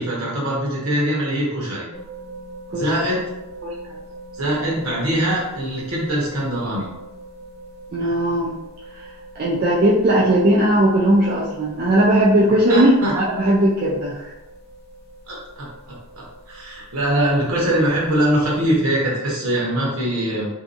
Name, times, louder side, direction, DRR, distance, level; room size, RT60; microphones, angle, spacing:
voice 1, 0.0-1.8 2.7-3.2 3.6-3.9 4.4-6.9 12.7-13.1 15.3-20.5, right 1 dB, 70° right, -5 dB, 0.9 m, -22 dB
sound 1, 1.9-18.8, right 1 dB, 45° left, 0.7 m, -42 dB
voice 2, 2.7-3.0 7.9-8.5 8.9-9.0 9.4-14.3, right 1 dB, 40° right, -6 dB, 0.4 m, -18 dB
2.7 x 2.2 x 2.5 m, 0.98 s
head